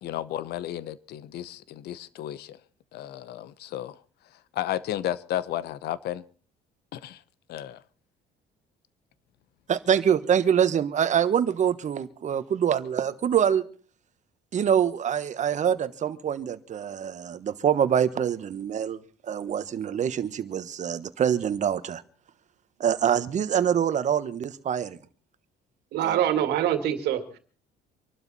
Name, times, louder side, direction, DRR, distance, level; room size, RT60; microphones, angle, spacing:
voice 1, 0.0-2.6 2.9-4.0 4.5-6.2 6.9-7.2 7.5-7.8, left 12 dB, 70° left, 0.9 m, -33 dB
voice 2, 9.7-13.6 14.5-22.0 22.8-25.0 26.0-26.2, right 8 dB, 45° right, 1.3 m, -25 dB
voice 3, 25.9-27.4, right 10 dB, 75° right, 2.2 m, -25 dB
25.5 x 12.0 x 4.2 m
cardioid pair, 110°, 17 cm